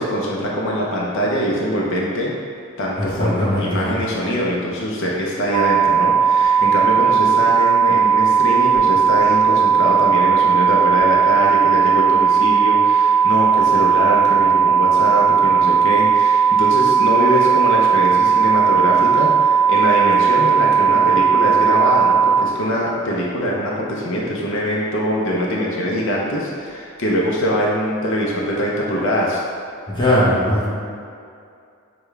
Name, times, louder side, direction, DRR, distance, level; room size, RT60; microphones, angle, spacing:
voice 1, 0.0-2.3 2.8-29.4, equal, 60° left, -4 dB, 0.7 m, -23 dB
voice 2, 3.0-3.9 29.9-30.7, left 1 dB, 20° left, -8 dB, 0.9 m, -19 dB
sound 1, 5.5-22.4, right 7 dB, 90° right, 0.4 m, -16 dB
6.6 x 2.3 x 3.3 m, 2.4 s
head